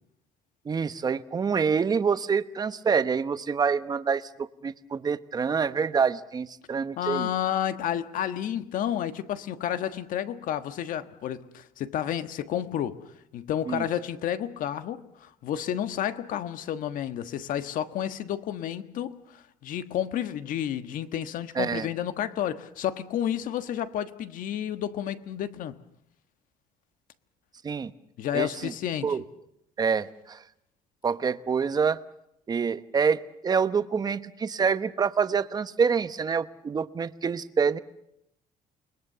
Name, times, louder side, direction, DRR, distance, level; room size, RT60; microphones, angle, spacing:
voice 1, 0.6-7.3 13.7-13.8 21.5-21.9 27.6-27.9 28.3-28.7 29.0-29.2 29.8-30.4 31.0-32.0 32.5-37.8, right 6 dB, 25° right, 1.0 m, -26 dB
voice 2, 7.0-13.0 13.3-25.8 28.2-29.1, left 10 dB, 65° left, 1.4 m, -31 dB
29.0 x 21.5 x 6.8 m
cardioid pair, 145°, 15 cm